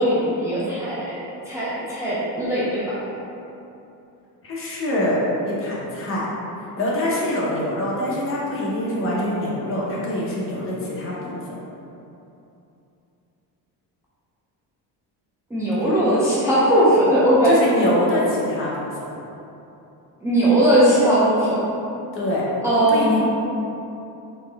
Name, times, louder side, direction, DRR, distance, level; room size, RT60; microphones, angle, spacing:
voice 1, 0.0-3.0 15.5-17.6 20.2-21.6 22.6-23.2, right 1 dB, 10° right, -10 dB, 0.5 m, -19 dB
voice 2, 4.4-5.2 5.4-6.2 6.8-11.4 15.8-15.9 17.4-19.1 22.1-22.4 22.9-23.2, left 1 dB, 35° left, -6 dB, 0.8 m, -24 dB
4.3 x 3.2 x 3.3 m, 2.9 s
cardioid pair, 160°, 40 cm